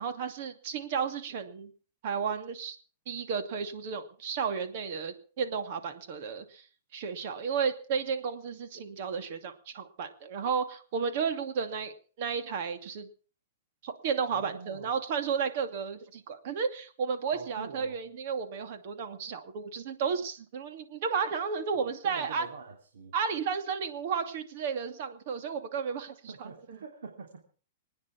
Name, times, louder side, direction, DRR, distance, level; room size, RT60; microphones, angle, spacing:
voice 1, 0.0-1.7 2.0-2.8 3.1-6.6 6.9-13.1 13.8-22.5 23.1-26.8, right 6 dB, 50° right, 8 dB, 2.5 m, -33 dB
voice 2, 14.3-14.9 17.3-18.0 22.0-23.1 26.3-27.5, right 4 dB, 90° right, 2 dB, 3.2 m, -45 dB
25.0 x 9.7 x 6.0 m, 0.41 s
hypercardioid pair, 150°, 0 cm